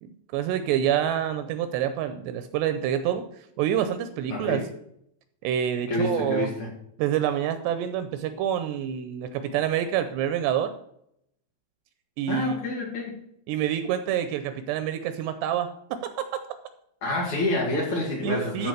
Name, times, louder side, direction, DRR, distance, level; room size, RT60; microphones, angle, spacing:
voice 1, 0.0-3.2 3.6-4.6 5.4-6.5 7.0-10.7 12.2-12.6 13.5-16.0 18.2-18.7, right 10 dB, 80° right, 10 dB, 2.6 m, -27 dB
voice 2, 4.3-4.7 5.9-6.7 12.3-13.2 17.0-18.7, left 2 dB, 45° left, -2 dB, 3.0 m, -28 dB
12.5 x 5.1 x 6.5 m, 0.74 s
omnidirectional pair, 5.2 m